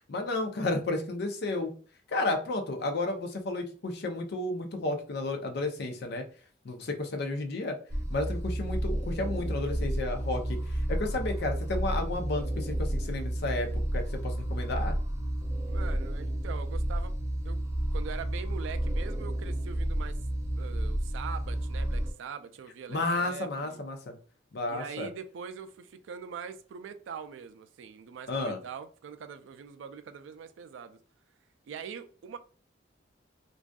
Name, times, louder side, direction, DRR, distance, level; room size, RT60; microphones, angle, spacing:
voice 1, 0.1-1.7 2.1-6.2 6.6-7.8 8.1-14.9 22.9-24.1 24.5-25.1 28.3-28.6, left 2 dB, 60° left, 0.5 m, -32 dB
sound 1, 7.9-22.1, right 1 dB, 15° right, 0.4 m, -31 dB
voice 2, 15.6-17.1 17.4-17.6 17.9-20.2 20.5-23.8 24.7-31.0 31.6-32.4, right 6 dB, 90° right, 0.3 m, -42 dB
2.5 x 2.3 x 2.2 m
head